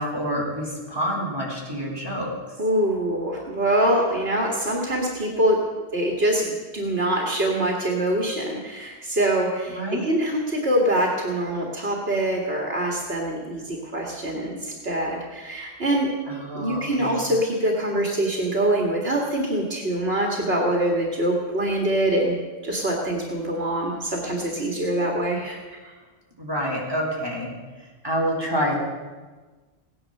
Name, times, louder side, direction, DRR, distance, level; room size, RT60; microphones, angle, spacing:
voice 1, 0.0-2.3 9.7-10.1 16.3-17.2 26.4-27.5 28.0-28.8, equal, 20° right, -4 dB, 4.1 m, -27 dB
voice 2, 2.6-16.1 16.5-22.4 22.6-25.6 25.8-25.9, right 1 dB, 65° right, 0 dB, 2.2 m, -24 dB
17.0 x 10.5 x 6.5 m, 1.3 s
omnidirectional pair, 1.1 m